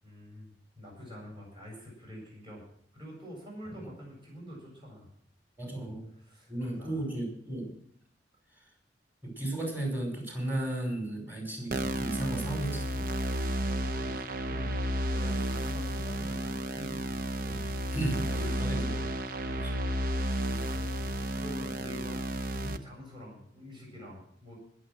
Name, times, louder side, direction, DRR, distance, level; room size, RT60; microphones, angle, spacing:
voice 1, 0.0-2.6 2.9-5.1 5.6-7.0 13.6-19.2 19.4-24.5, equal, 30° right, -2 dB, 7.6 m, -47 dB
voice 2, 5.6-6.1 6.5-7.8 8.5-8.6 9.2-13.1 17.4-17.6 17.9-19.0 19.5-19.7, right 1 dB, 10° right, 1 dB, 5.3 m, -35 dB
sound 1, 11.7-22.8, right 1 dB, 55° right, 0.9 m, -32 dB
20.5 x 7.6 x 6.2 m, 0.65 s
head